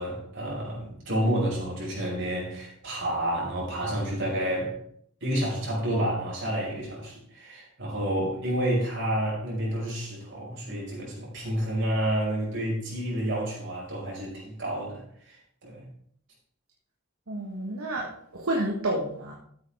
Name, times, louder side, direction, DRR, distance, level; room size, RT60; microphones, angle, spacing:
voice 1, 0.0-4.7 5.2-15.9, right 1 dB, 60° right, -3 dB, 5.4 m, -29 dB
voice 2, 17.3-19.3, right 1 dB, 80° right, -2 dB, 1.6 m, -30 dB
13.5 x 8.5 x 3.6 m, 0.65 s
head